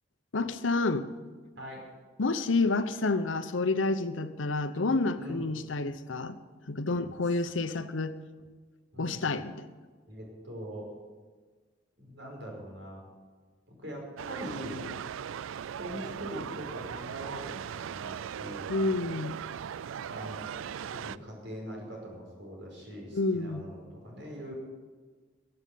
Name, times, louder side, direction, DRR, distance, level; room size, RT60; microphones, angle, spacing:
voice 1, 0.3-1.1 2.2-6.4 6.7-8.2 9.0-9.6 18.7-19.4 23.1-23.6, left 3 dB, 85° left, 11 dB, 0.9 m, -29 dB
voice 2, 1.6-1.9 5.2-5.5 8.9-9.4 10.1-10.9 12.0-13.0 13.7-14.8 15.8-18.7 20.1-20.4 20.9-24.5, equal, 70° right, -1 dB, 5.3 m, -42 dB
sound 1, 14.2-21.2, right 8 dB, 90° right, 0.3 m, -39 dB
15.5 x 8.1 x 9.4 m, 1.4 s
head